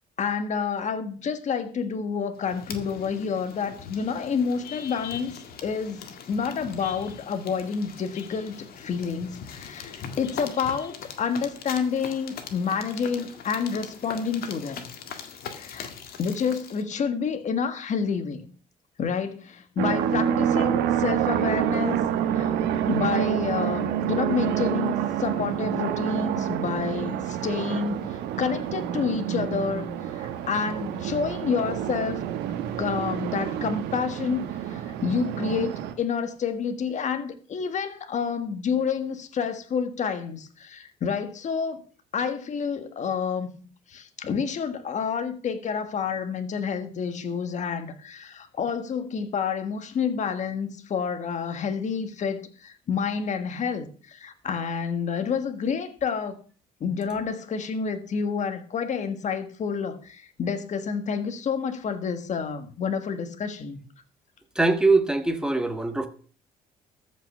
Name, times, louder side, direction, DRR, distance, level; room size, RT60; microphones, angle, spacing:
voice 1, 0.2-5.3 5.6-14.9 15.2-15.9 16.2-18.5 19.0-22.0 22.3-22.5 22.9-32.2 32.8-41.8 42.1-56.4 56.8-63.8, left 6 dB, 45° left, 1.6 m, -29 dB
sound 1, 2.4-16.8, left 7 dB, 60° left, 1.8 m, -41 dB
sound 2, 19.8-35.9, right 10 dB, 85° right, 1.4 m, -27 dB
voice 2, 64.5-66.1, right 3 dB, 5° right, 1.5 m, -22 dB
14.0 x 5.7 x 6.7 m
cardioid pair, 110°, 17 cm